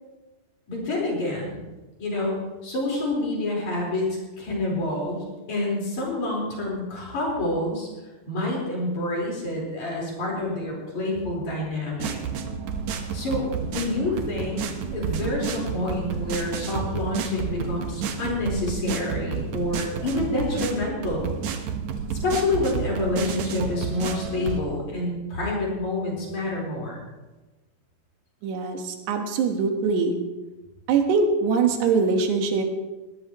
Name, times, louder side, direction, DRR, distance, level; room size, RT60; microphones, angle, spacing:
voice 1, 0.7-1.6 2.0-2.4 2.6-4.1 4.4-7.9 8.3-12.2 13.1-14.7 14.9-21.3 22.1-27.0, left 2 dB, 45° left, -3 dB, 5.7 m, -28 dB
sound 1, 12.0-24.6, right 6 dB, 70° right, 1.8 m, -31 dB
voice 2, 28.4-30.2 30.9-32.6, right 5 dB, 90° right, 4 dB, 3.6 m, -22 dB
22.0 x 16.0 x 3.1 m, 1.2 s
omnidirectional pair, 4.7 m